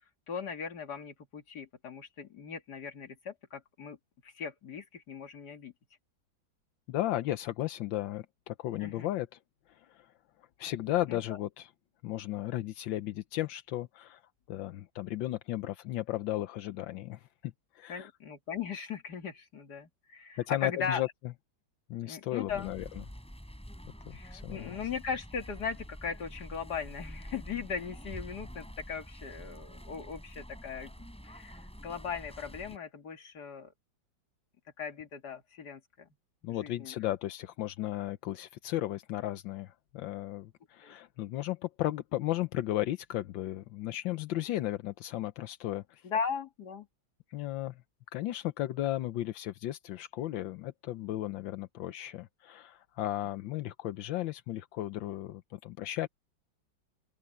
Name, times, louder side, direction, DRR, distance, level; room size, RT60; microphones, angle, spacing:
voice 1, 0.3-4.0 4.2-5.7 8.8-9.1 11.1-11.2 17.9-21.0 22.0-22.7 24.1-33.7 34.8-36.1 36.6-36.9 40.8-40.9 46.0-46.9, left 6 dB, 60° left, 2.6 m, -38 dB
voice 2, 6.9-9.4 9.7-10.1 10.6-11.7 12.0-14.2 14.5-18.1 20.4-21.1 21.9-22.8 24.1-24.8 36.4-46.1 47.3-47.8 48.1-56.1, left 14 dB, 80° left, 1.5 m, -35 dB
sound 1, 22.5-32.8, equal, 5° left, 4.7 m, -47 dB
open air
omnidirectional pair, 2.1 m